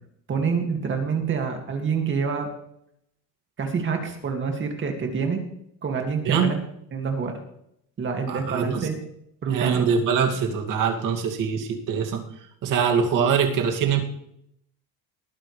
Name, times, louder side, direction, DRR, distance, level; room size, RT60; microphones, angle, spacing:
voice 1, 0.3-2.5 3.6-5.4 5.8-6.6 6.9-7.4 8.0-9.0 9.4-9.8, right 5 dB, 30° right, 3 dB, 2.3 m, -27 dB
voice 2, 8.3-8.9 9.5-12.2 12.6-14.0, right 6 dB, 55° right, 3 dB, 2.4 m, -23 dB
19.5 x 9.5 x 3.3 m, 0.74 s
cardioid pair, 145°, 38 cm